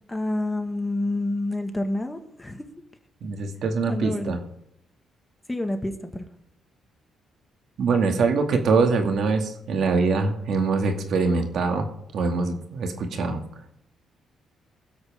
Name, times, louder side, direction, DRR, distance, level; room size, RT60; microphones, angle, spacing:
voice 1, 0.1-2.7 3.9-4.3 5.5-6.3, left 1 dB, 10° left, 6 dB, 1.7 m, -28 dB
voice 2, 3.2-4.4 7.8-11.9 12.1-13.4, right 4 dB, 65° right, 4 dB, 2.3 m, -23 dB
23.0 x 8.1 x 3.7 m, 0.77 s
cardioid pair, 90°, 0 cm